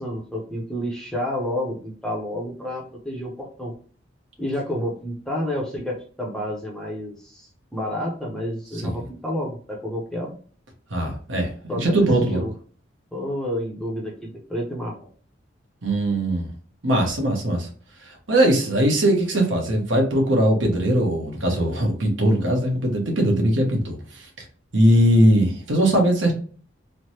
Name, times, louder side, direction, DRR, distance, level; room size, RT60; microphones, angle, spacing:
voice 1, 0.0-3.7 4.4-10.4 11.7-12.5 13.1-15.1, equal, 5° left, -2 dB, 0.6 m, -30 dB
voice 2, 10.9-12.4 15.8-16.5 16.8-17.7 18.0-24.4 24.7-26.3, right 1 dB, 75° right, 1 dB, 1.0 m, -20 dB
3.2 x 2.1 x 2.8 m, 0.43 s
head